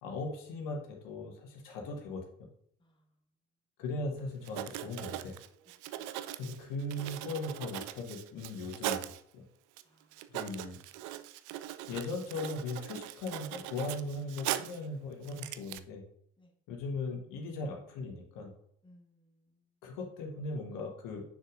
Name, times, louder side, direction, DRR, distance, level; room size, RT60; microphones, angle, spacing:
voice 1, 0.0-2.5 3.8-5.3 6.4-9.5 10.3-10.8 11.9-16.0 16.7-18.5 19.8-21.2, left 2 dB, 60° left, 1 dB, 1.4 m, -38 dB
voice 2, 2.8-3.2 6.0-6.1 9.8-10.4 16.4-16.5 18.8-19.7, left 1 dB, 15° left, 2 dB, 1.3 m, -64 dB
Writing, 4.4-9.2 9.8-9.9 10.1-14.9 15.2-15.8, right 13 dB, 55° right, 0.5 m, -40 dB
6.9 x 6.6 x 2.5 m, 0.70 s
figure-of-eight pair, 50°, 37 cm